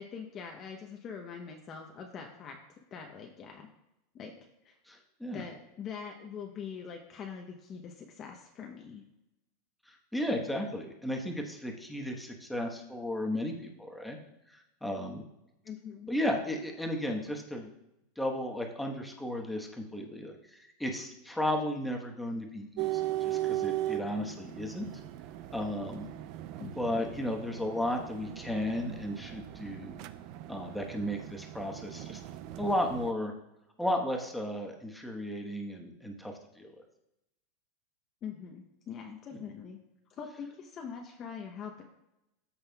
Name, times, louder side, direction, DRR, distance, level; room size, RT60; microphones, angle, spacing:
voice 1, 0.0-2.6 2.9-3.7 4.1-4.3 4.6-4.7 5.3-9.0 15.6-16.1 26.6-26.8 38.2-39.8 40.1-41.8, left 6 dB, 30° left, 2 dB, 0.8 m, -43 dB
voice 2, 4.9-5.5 9.9-14.2 14.5-15.2 16.1-17.7 18.2-24.9 25.5-26.1 26.6-30.0 30.5-32.2 32.6-33.3 33.8-36.7, left 1 dB, 5° left, 1 dB, 1.2 m, -34 dB
sound 1, 22.8-33.1, right 14 dB, 50° right, 0.4 m, -38 dB
13.5 x 5.6 x 2.3 m, 0.88 s
supercardioid pair, 145°, 0 cm